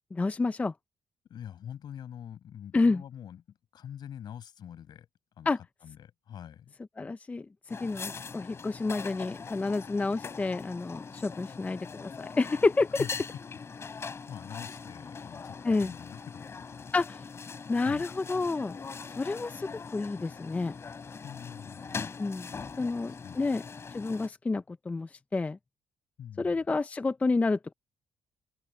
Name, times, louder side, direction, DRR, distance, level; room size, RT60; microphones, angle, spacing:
voice 1, 0.1-0.7 2.7-3.0 5.5-5.6 7.0-7.5 7.8-12.9 15.6-15.9 16.9-17.2 17.7-18.8 19.1-20.7 22.2-22.5 22.8-23.6 23.9-25.6 26.4-27.7, left 3 dB, 20° left, 0.4 m, -29 dB
voice 2, 1.3-5.1 5.4-6.7 13.0-13.1 13.9-14.0 14.3-17.0 17.8-18.0 21.2-22.1 22.8-23.4 26.2-26.7, left 9 dB, 65° left, 6.9 m, -45 dB
sound 1, 7.7-24.3, left 5 dB, 35° left, 3.0 m, -42 dB
open air
cardioid pair, 125°, 8 cm